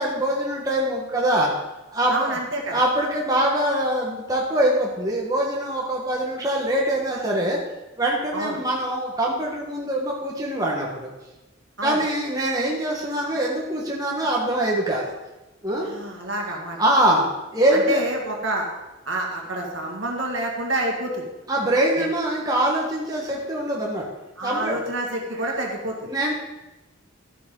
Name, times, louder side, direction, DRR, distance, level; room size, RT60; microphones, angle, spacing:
voice 1, 0.0-1.5 1.9-2.4 2.7-7.6 8.0-11.1 11.8-15.1 15.6-15.9 16.5-18.0 21.5-24.0 24.4-24.8 25.4-25.6 26.1-26.3, right 1 dB, 15° right, -3 dB, 1.4 m, -23 dB
voice 2, 2.1-2.8 8.3-8.6 11.8-12.0 15.8-16.8 17.2-17.3 17.7-18.7 19.1-21.3 22.0-22.1 24.4-26.1, right 1 dB, 60° right, 0 dB, 2.0 m, -28 dB
12.5 x 8.4 x 3.9 m, 1.0 s
head